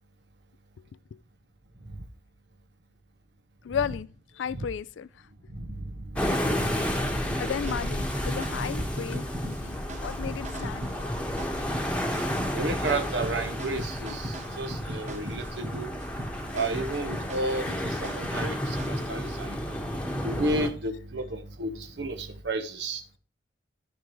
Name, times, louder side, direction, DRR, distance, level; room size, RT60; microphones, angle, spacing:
voice 1, 3.6-4.1 4.3-5.1 7.0-11.2 11.5-11.6, left 7 dB, 85° left, 0.4 m, -34 dB
sound 1, 6.1-20.7, equal, 5° left, 1.1 m, -32 dB
sound 2, 7.3-19.1, equal, 40° right, 1.2 m, -39 dB
voice 2, 12.5-15.9 16.5-19.6 20.2-23.0, right 2 dB, 70° right, 1.1 m, -32 dB
13.5 x 5.2 x 3.1 m
head